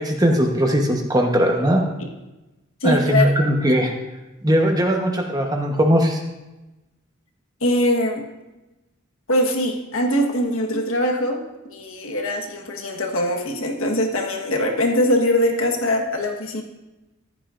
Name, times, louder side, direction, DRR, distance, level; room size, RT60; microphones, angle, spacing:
voice 1, 0.0-1.8 2.8-3.9 4.4-6.2, equal, 15° right, 1 dB, 1.0 m, -19 dB
voice 2, 2.8-3.4 7.6-8.2 9.3-11.4 11.6-16.6, left 1 dB, 65° left, 2 dB, 1.4 m, -22 dB
14.5 x 11.0 x 2.6 m, 1.0 s
head